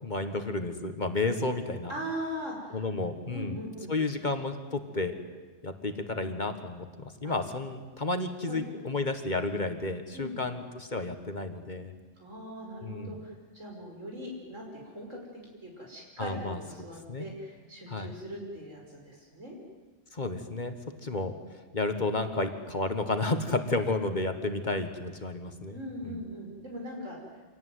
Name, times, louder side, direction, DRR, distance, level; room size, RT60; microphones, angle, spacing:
voice 1, 0.0-1.9 2.7-3.6 3.9-5.1 5.6-11.9 12.8-13.2 16.2-16.6 17.1-17.3 17.9-18.1 20.1-20.7 21.0-21.3 21.7-25.8 26.0-26.2, left 2 dB, 40° left, 7 dB, 1.7 m, -31 dB
voice 2, 1.9-2.8 3.3-3.9 7.2-7.4 8.5-8.6 10.1-10.4 12.2-15.2 15.6-19.6 25.7-27.4, equal, 85° right, 0 dB, 6.2 m, -40 dB
26.5 x 18.0 x 9.4 m, 1.3 s
omnidirectional pair, 1.3 m